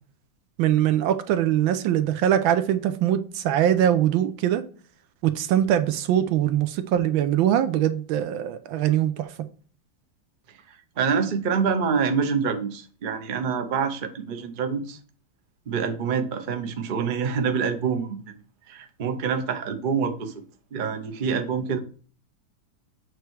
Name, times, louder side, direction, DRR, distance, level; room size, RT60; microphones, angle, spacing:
voice 1, 0.6-4.6 5.2-9.3, right 10 dB, 85° right, 1.5 m, -22 dB
voice 2, 10.7-15.0 15.7-18.4 18.7-20.3 20.7-21.8, right 6 dB, 55° right, 0.5 m, -26 dB
8.0 x 3.3 x 4.6 m
omnidirectional pair, 2.1 m